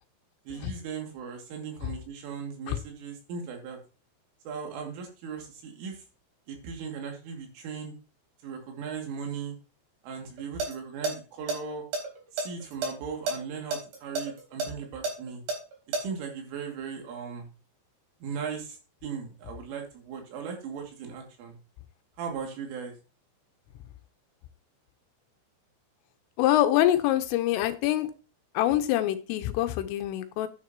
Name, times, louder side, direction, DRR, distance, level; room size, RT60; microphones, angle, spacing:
voice 1, 0.5-3.8 4.4-6.0 6.5-7.9 8.4-9.6 10.0-11.9 12.3-15.4 16.0-17.5 18.2-21.6 22.2-22.9, right 6 dB, 75° right, 2 dB, 4.9 m, -38 dB
sound 1, 10.4-10.7 11.0-11.1 11.5-12.9 13.3-13.4 13.7-16.0, right 3 dB, 50° right, 5.0 m, -29 dB
voice 2, 26.4-28.1 28.5-30.5, left 13 dB, 90° left, 8 dB, 3.4 m, -25 dB
11.0 x 9.6 x 2.9 m, 0.34 s
omnidirectional pair, 5.9 m